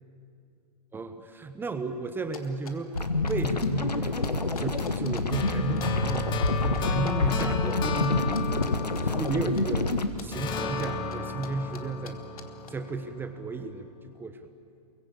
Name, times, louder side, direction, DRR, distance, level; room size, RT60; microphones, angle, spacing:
voice 1, 0.9-4.2 4.5-8.5 9.0-9.9 10.2-12.2 12.7-14.5, right 3 dB, 10° right, 9 dB, 1.2 m, -34 dB
sound 1, 2.3-5.2 5.5-7.1 7.4-7.8 8.0-9.6 9.9-11.5 11.7-11.8 12.0-12.1 12.4-12.7, left 7 dB, 60° left, 2.8 m, -46 dB
sound 2, 2.9-10.1, left 3 dB, 85° left, 1.8 m, -27 dB
sound 3, 5.3-9.9 10.3-13.4, left 3 dB, 20° left, 2.2 m, -33 dB
29.5 x 23.0 x 8.6 m, 2.4 s
figure-of-eight pair, 115°, 21 cm